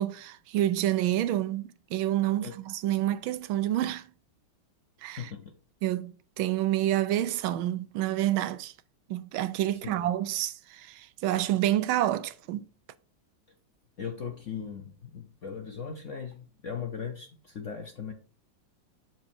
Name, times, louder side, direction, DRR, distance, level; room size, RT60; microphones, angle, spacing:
voice 1, 0.0-4.1 5.0-5.2 5.8-8.7 9.1-12.6, right 13 dB, 80° right, 1.4 m, -28 dB
voice 2, 5.2-5.5 9.7-10.1 14.0-18.1, left 7 dB, 60° left, 0.8 m, -38 dB
7.4 x 7.4 x 2.7 m
omnidirectional pair, 2.3 m